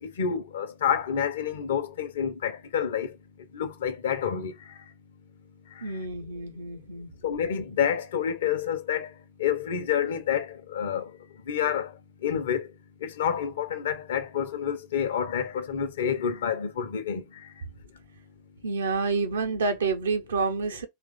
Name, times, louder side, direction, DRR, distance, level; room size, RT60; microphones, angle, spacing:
voice 1, 0.0-3.1 3.5-4.5 7.2-9.1 9.4-11.1 11.5-11.9 12.2-12.7 13.0-17.2, left 8 dB, 65° left, 0.7 m, -28 dB
voice 2, 5.8-7.1 18.6-20.9, right 4 dB, 70° right, 0.7 m, -28 dB
3.0 x 2.4 x 3.8 m
figure-of-eight pair, 90°, 0 cm